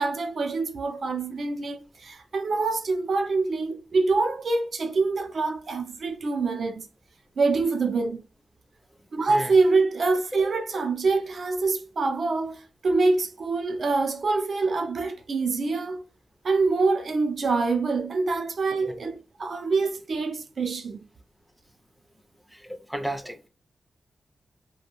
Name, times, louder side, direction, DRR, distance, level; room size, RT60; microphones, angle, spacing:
voice 1, 0.0-6.9 7.4-8.2 9.1-16.0 16.4-21.1, right 3 dB, 55° right, 0.4 m, -25 dB
voice 2, 22.5-23.5, right 1 dB, ahead, 0.4 m, -33 dB
2.5 x 2.1 x 2.9 m
wide cardioid pair, 135°, 0 cm